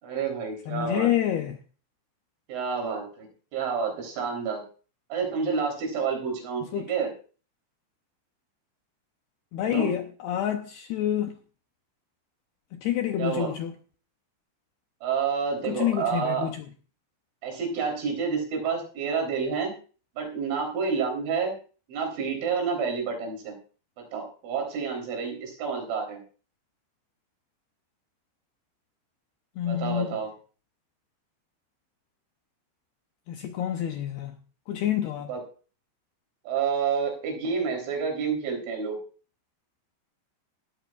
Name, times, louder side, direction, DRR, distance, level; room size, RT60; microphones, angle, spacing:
voice 1, 0.0-1.1 2.5-3.3 3.5-4.6 5.1-7.1 9.6-9.9 13.2-13.5 15.0-16.5 17.4-19.7 20.2-21.5 21.9-23.6 24.0-26.2 29.6-30.3 35.3-35.4 36.5-39.0, right 6 dB, 75° right, 6.0 m, -29 dB
voice 2, 0.7-1.6 6.7-6.9 9.5-11.4 12.7-13.7 15.6-16.6 29.6-30.2 33.3-34.3 34.7-35.3, left 11 dB, 80° left, 2.4 m, -28 dB
18.0 x 13.0 x 2.4 m
omnidirectional pair, 5.5 m